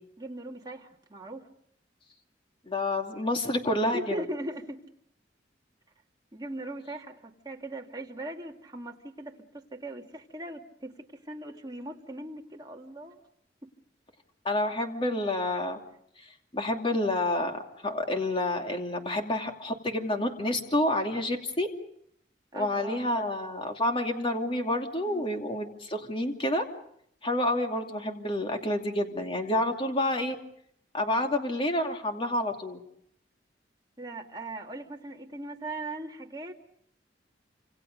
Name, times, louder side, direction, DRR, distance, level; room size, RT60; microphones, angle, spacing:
voice 1, 0.2-1.5 3.9-4.8 6.3-13.2 22.5-23.3 25.0-25.3 34.0-36.5, right 1 dB, 25° right, 1 dB, 2.3 m, -39 dB
voice 2, 2.7-4.2 14.4-15.8 16.5-17.6 17.8-21.7 22.5-26.6 27.2-30.3 30.9-32.8, left 1 dB, 30° left, 3 dB, 2.6 m, -29 dB
28.0 x 27.0 x 5.3 m, 0.70 s
head